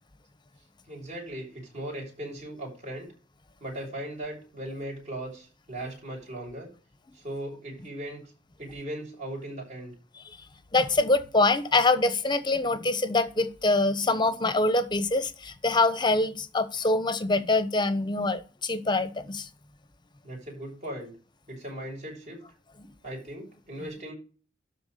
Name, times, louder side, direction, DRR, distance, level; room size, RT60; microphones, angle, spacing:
voice 1, 0.9-3.1 3.6-6.7 7.1-8.2 8.6-9.9 20.2-21.1 21.5-22.4 23.0-24.1, right 1 dB, 40° right, 6.5 m, -38 dB
voice 2, 10.7-19.5, left 2 dB, 25° left, 1.1 m, -24 dB
12.0 x 4.5 x 6.8 m
head